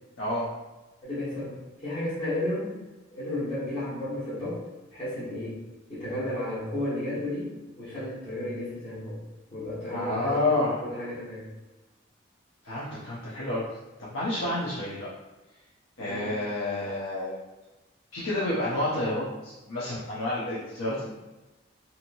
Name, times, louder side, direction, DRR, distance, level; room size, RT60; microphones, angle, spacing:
voice 1, 0.2-0.5 9.9-10.8 12.6-13.7 14.1-15.1 16.0-17.4 18.1-21.1, left 1 dB, 85° left, -8 dB, 0.7 m, -29 dB
voice 2, 1.0-2.8 3.1-4.6 4.9-5.6 5.9-9.2 9.5-11.5 16.0-16.4, left 1 dB, 25° left, -11 dB, 1.2 m, -33 dB
2.9 x 2.8 x 2.6 m, 1.1 s
head